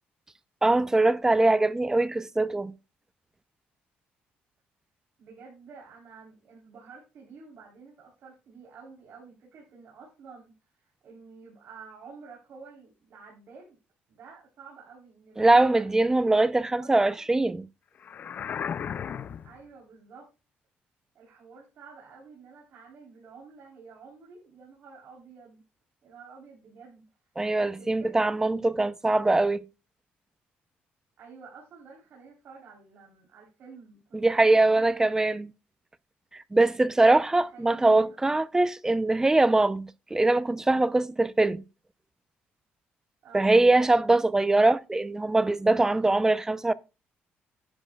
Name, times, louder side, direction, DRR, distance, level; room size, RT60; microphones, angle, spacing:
voice 1, 0.6-2.7 15.4-17.7 27.4-29.6 34.1-35.5 36.3-41.6 43.3-46.7, right 2 dB, 15° right, 0.6 m, -22 dB
voice 2, 5.2-13.8 14.1-15.9 16.6-17.3 19.4-20.3 21.1-25.6 26.0-27.1 27.5-28.8 31.2-35.3 37.3-38.2 39.1-39.4 43.2-43.6, right 5 dB, 60° right, 3.8 m, -50 dB
sound 1, 18.0-19.6, left 8 dB, 45° left, 0.4 m, -34 dB
11.0 x 10.5 x 2.4 m
cardioid pair, 110°, 4 cm